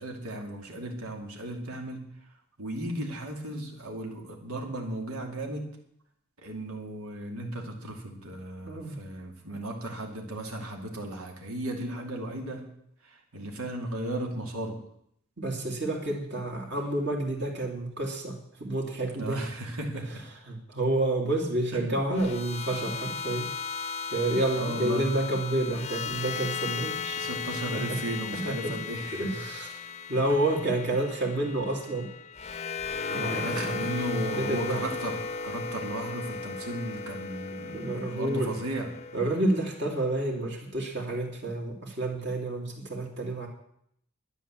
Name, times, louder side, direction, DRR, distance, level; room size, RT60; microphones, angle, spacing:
voice 1, 0.0-2.1 2.6-5.7 6.4-12.6 13.0-14.8 19.1-20.2 24.5-25.1 27.2-29.4 33.0-38.9, right 1 dB, 85° right, 1 dB, 2.6 m, -35 dB
voice 2, 8.6-9.0 15.4-19.5 20.5-23.5 24.1-27.2 27.7-28.0 28.3-28.8 29.1-29.8 30.1-32.1 33.1-33.8 34.1-34.8 37.7-38.5 39.1-43.5, right 1 dB, 50° right, -1 dB, 2.7 m, -29 dB
sound 1, 22.1-40.3, left 5 dB, 30° left, 0.7 m, -36 dB
11.0 x 10.0 x 7.5 m, 0.70 s
head